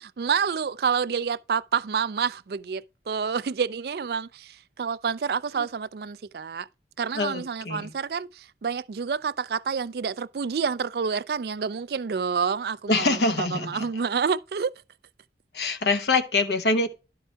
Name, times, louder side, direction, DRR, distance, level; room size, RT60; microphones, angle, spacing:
voice 1, 0.0-6.7 7.0-14.7, right 6 dB, 60° right, 0.4 m, -28 dB
voice 2, 7.1-7.9 12.9-13.9 15.5-16.9, left 3 dB, 70° left, 1.0 m, -25 dB
11.0 x 4.7 x 4.4 m
head